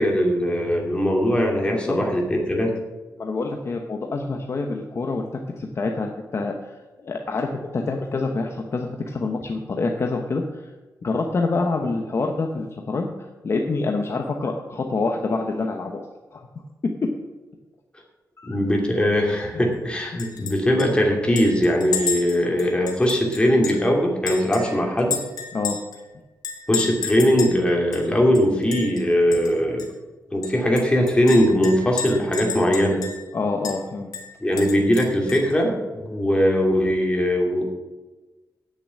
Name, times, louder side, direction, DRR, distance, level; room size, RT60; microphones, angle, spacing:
voice 1, 0.0-2.7 11.8-11.9 18.4-25.2 26.7-29.8 30.3-33.0 34.4-37.6, equal, 15° left, 0 dB, 2.7 m, -20 dB
voice 2, 3.2-10.7 11.0-16.0 16.3-16.5 18.4-18.6 20.1-20.2 25.5-25.8 33.3-34.1, left 3 dB, 45° left, 3 dB, 1.0 m, -27 dB
Chink clink, 20.2-20.5 20.8-20.9 21.4-23.9 24.3-26.0 26.4-27.6 27.9-28.0 28.3-29.0 29.3-29.5 29.8-29.9 30.4-33.3 33.6-33.8 34.1-35.5, left 6 dB, 85° left, 1.9 m, -31 dB
8.9 x 6.9 x 8.3 m, 1.2 s
wide cardioid pair, 125°, 7 cm